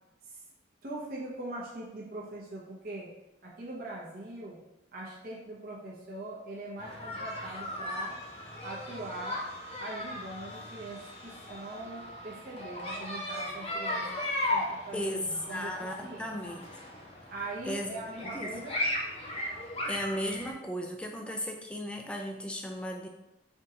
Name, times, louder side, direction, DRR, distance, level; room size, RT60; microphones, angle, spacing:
voice 1, 0.8-3.1 3.4-4.6 4.9-8.1 8.6-9.4 9.8-14.1 14.5-15.2 15.5-16.3 17.3-18.8, right 2 dB, 50° right, -5 dB, 0.8 m, -41 dB
sound 1, 6.8-20.5, left 1 dB, 30° left, 0.8 m, -37 dB
Wind instrument woodwind instrument, 8.1-13.5, right 2 dB, 75° left, 1.1 m, -52 dB
voice 2, 14.9-16.6 17.6-18.0 18.2-18.5 19.8-23.1, equal, 5° left, 2 dB, 0.3 m, -35 dB
3.6 x 2.8 x 3.8 m, 0.94 s
head